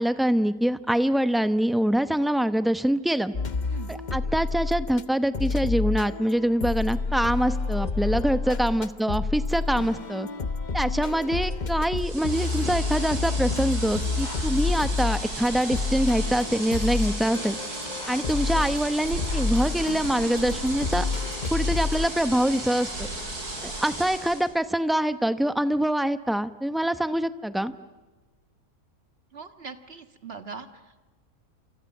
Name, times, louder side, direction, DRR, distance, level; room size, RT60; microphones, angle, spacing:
voice 1, 0.0-3.3 3.9-10.3 10.7-17.6 18.1-21.1 21.5-23.1 23.6-27.7, right 1 dB, ahead, 11 dB, 0.5 m, -25 dB
sound 1, 3.3-5.0 5.3-22.1, left 4 dB, 35° left, 0.9 m, -29 dB
voice 2, 3.7-4.0 8.5-8.6 17.3-17.4 29.3-30.7, right 5 dB, 40° right, 8 dB, 1.8 m, -41 dB
sound 2, 12.0-24.5, right 2 dB, 90° right, 5.5 m, -35 dB
sound 3, 15.2-20.4, right 1 dB, 15° right, 4.7 m, -49 dB
28.5 x 27.5 x 7.2 m, 1.2 s
omnidirectional pair, 1.6 m